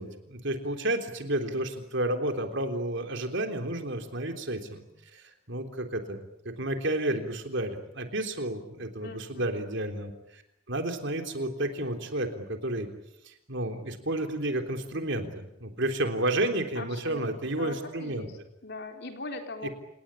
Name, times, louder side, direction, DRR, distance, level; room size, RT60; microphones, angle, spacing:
voice 1, 0.0-4.8 5.1-6.2 6.5-10.4 10.7-12.9 13.2-18.3, right 1 dB, 55° right, 6 dB, 3.5 m, -31 dB
voice 2, 9.0-9.6 16.8-17.3 17.6-19.7, left 2 dB, 50° left, 4 dB, 4.1 m, -41 dB
29.0 x 19.0 x 10.0 m, 0.87 s
head